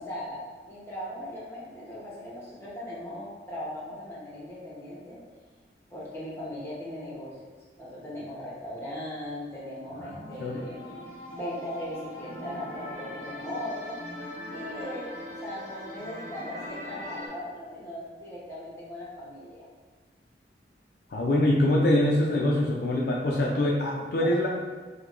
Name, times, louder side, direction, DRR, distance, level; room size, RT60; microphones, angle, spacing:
voice 1, 0.0-5.2 5.9-7.4 7.8-10.9 11.3-14.0 14.5-15.1 15.4-19.7, left 1 dB, 15° left, -8 dB, 0.9 m, -38 dB
sound 1, 9.8-17.3, left 1 dB, 40° right, 0.9 m, -41 dB
voice 2, 21.1-24.5, left 1 dB, 60° left, -3 dB, 0.4 m, -24 dB
4.7 x 2.2 x 2.4 m, 1.4 s
head